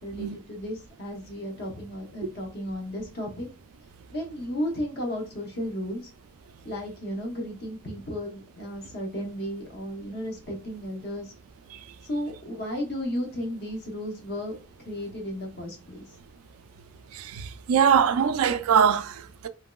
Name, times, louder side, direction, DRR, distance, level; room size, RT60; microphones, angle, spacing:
voice 1, 0.0-3.5 4.1-6.1 6.6-11.3 12.0-16.0, equal, 45° left, 0.8 m, -34 dB
voice 2, 17.1-19.5, right 7 dB, 85° right, 0.3 m, -23 dB
2.9 x 2.7 x 2.3 m
head